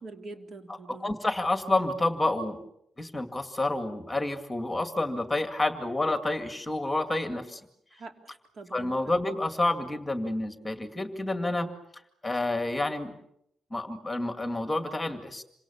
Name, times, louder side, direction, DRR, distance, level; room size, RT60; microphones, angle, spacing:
voice 1, 0.0-1.2 7.9-9.1, right 3 dB, 50° right, 5 dB, 3.4 m, -45 dB
voice 2, 0.9-2.6 3.0-7.6 8.7-11.7 12.2-13.1 13.7-15.4, left 2 dB, 10° left, 7 dB, 2.2 m, -29 dB
27.5 x 26.0 x 7.2 m, 0.76 s
cardioid pair, 145°, 0 cm